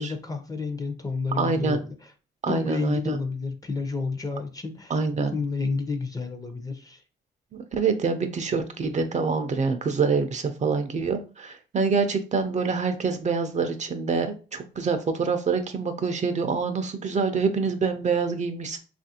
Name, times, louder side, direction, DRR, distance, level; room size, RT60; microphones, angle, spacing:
voice 1, 0.0-2.0 2.5-4.9 5.3-7.0, left 4 dB, 20° left, 7 dB, 0.5 m, -30 dB
voice 2, 1.4-1.8 2.4-3.2 4.9-5.4 7.5-18.8, right 4 dB, 35° right, 7 dB, 0.4 m, -26 dB
2.9 x 2.5 x 2.8 m, 0.34 s
cardioid pair, 90°, 20 cm